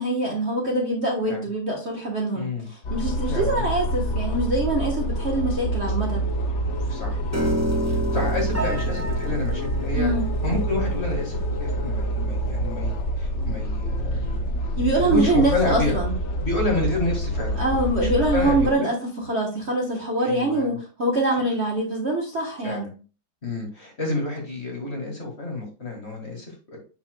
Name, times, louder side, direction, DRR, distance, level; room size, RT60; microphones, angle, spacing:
voice 1, 0.0-2.5 2.9-6.2 9.9-10.2 14.8-16.1 17.6-18.9 19.3-22.9, right 2 dB, 40° right, -1 dB, 1.3 m, -24 dB
voice 2, 2.3-2.7 3.3-3.8 6.9-7.2 7.9-10.1 10.4-14.4 14.9-16.0 16.4-17.6 18.0-18.9 20.2-20.8 22.6-22.9 23.4-26.8, left 2 dB, 35° left, 0 dB, 1.9 m, -29 dB
sound 1, 2.8-18.7, right 1 dB, 75° left, 0.6 m, -27 dB
Piano, 7.3-13.5, equal, 25° right, 0.3 m, -31 dB
7.1 x 6.1 x 2.2 m, 0.34 s
omnidirectional pair, 2.2 m